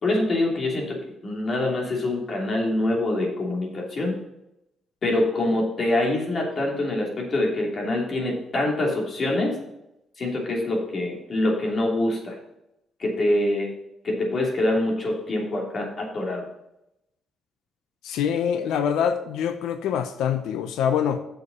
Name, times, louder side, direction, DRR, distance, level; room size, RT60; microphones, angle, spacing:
voice 1, 0.0-4.2 5.0-9.6 10.2-12.4 13.0-13.7 14.0-16.4, left 1 dB, 45° left, 3.0 m, -25 dB
voice 2, 18.0-21.2, left 8 dB, 85° left, 0.6 m, -25 dB
7.4 x 6.8 x 5.7 m
cardioid pair, 90°, 0 cm